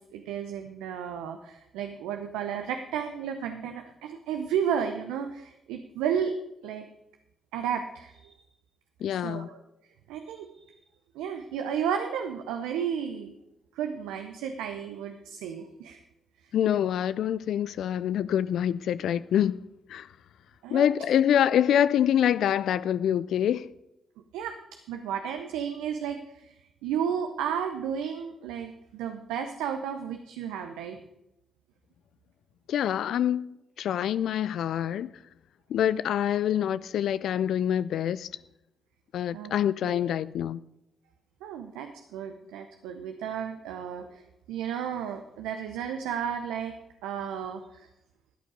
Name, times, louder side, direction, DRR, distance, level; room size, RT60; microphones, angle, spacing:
voice 1, 0.1-6.3 6.6-6.9 7.5-8.4 9.1-9.6 10.1-10.8 11.1-13.3 13.8-16.0 16.4-16.5 20.6-20.8 24.3-24.6 24.9-31.0 39.3-39.5 39.8-40.1 41.4-44.2 44.5-46.8 47.0-47.9, right 8 dB, 80° right, 0.7 m, -33 dB
voice 2, 9.0-9.5 16.5-19.6 19.9-20.1 20.7-23.7 32.7-35.1 35.7-38.3 39.1-40.6, left 10 dB, 70° left, 0.3 m, -26 dB
13.5 x 8.5 x 5.1 m
hypercardioid pair, 40°, 0 cm